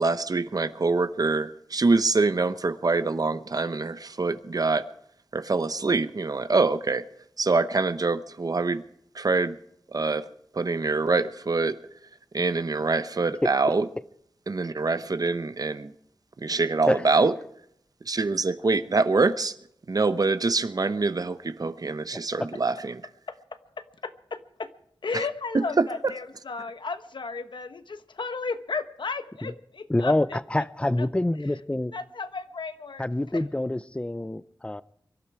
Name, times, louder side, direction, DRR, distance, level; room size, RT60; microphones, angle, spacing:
voice 1, 0.0-4.8 5.3-7.0 7.4-8.8 9.1-9.6 9.9-10.2 10.5-11.8 12.3-13.8 14.5-15.9 16.4-17.3 18.1-19.5 19.9-23.0 25.5-25.8, right 3 dB, 50° right, 0.9 m, -25 dB
voice 2, 23.8-24.7 25.0-30.1 31.0-31.1 31.9-33.0, left 4 dB, 75° left, 1.1 m, -34 dB
voice 3, 29.9-31.9 33.0-34.8, left 1 dB, 15° left, 0.6 m, -26 dB
23.5 x 12.0 x 4.8 m
wide cardioid pair, 75°, 8 cm